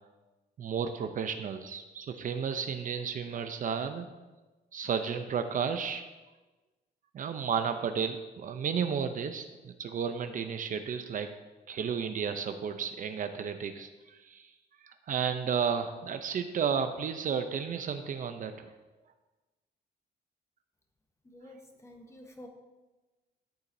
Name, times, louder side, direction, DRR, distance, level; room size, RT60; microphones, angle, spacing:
voice 1, 0.6-4.1 4.7-6.0 7.1-11.3 11.7-14.5 14.8-18.7, right 7 dB, 50° right, 8 dB, 0.5 m, -33 dB
voice 2, 21.2-22.5, left 1 dB, 15° left, 3 dB, 1.1 m, -50 dB
13.5 x 7.0 x 2.7 m, 1.2 s
cardioid pair, 140°, 18 cm